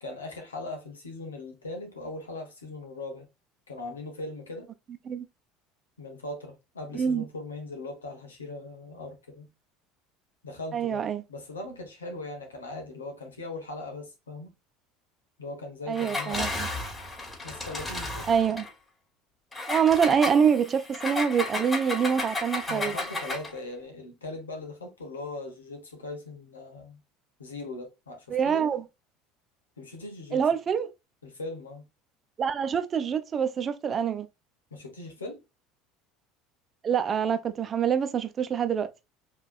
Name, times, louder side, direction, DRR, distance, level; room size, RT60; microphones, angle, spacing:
voice 1, 0.0-3.3 3.7-4.7 6.0-9.5 10.4-14.5 15.4-16.7 17.4-18.3 22.7-27.0 27.4-28.7 29.8-30.4 31.2-31.8 34.7-35.4, left 2 dB, 85° left, 1.3 m, -39 dB
voice 2, 10.7-11.2 15.9-16.7 18.3-18.7 19.7-23.0 28.3-28.8 30.3-30.9 32.4-34.3 36.8-38.9, right 7 dB, 35° right, 0.7 m, -25 dB
Engine, 15.9-18.7 19.5-23.6, left 2 dB, 20° left, 2.8 m, -33 dB
4.8 x 3.3 x 2.4 m
hypercardioid pair, 70°, 0 cm